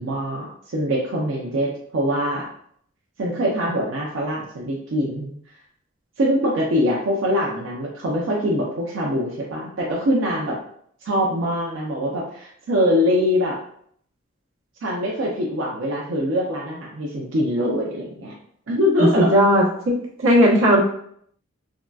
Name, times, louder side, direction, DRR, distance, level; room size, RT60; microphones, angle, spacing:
voice 1, 0.0-2.5 3.2-5.3 6.2-10.6 11.0-13.6 14.8-18.3 18.7-19.3, equal, 70° right, -4 dB, 0.5 m, -23 dB
voice 2, 19.2-20.8, equal, 90° right, -3 dB, 0.9 m, -16 dB
3.7 x 2.3 x 2.3 m, 0.65 s
head